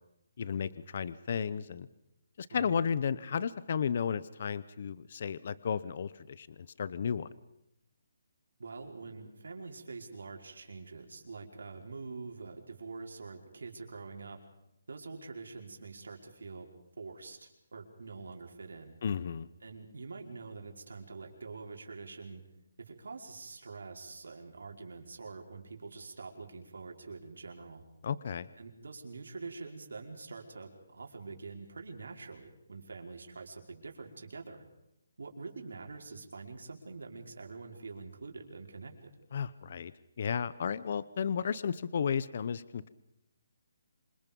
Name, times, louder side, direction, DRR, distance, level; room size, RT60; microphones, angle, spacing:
voice 1, 0.4-1.9 2.4-7.3 19.0-19.5 28.0-28.5 39.3-39.9 40.2-42.9, left 7 dB, 40° left, 18 dB, 0.8 m, -33 dB
voice 2, 8.6-14.4 14.9-16.7 17.0-18.9 19.6-22.4 22.8-27.8 28.6-34.6 35.2-38.9, right 4 dB, 90° right, 2 dB, 5.2 m, -45 dB
27.0 x 26.0 x 5.4 m, 0.84 s
hypercardioid pair, 175°, 0 cm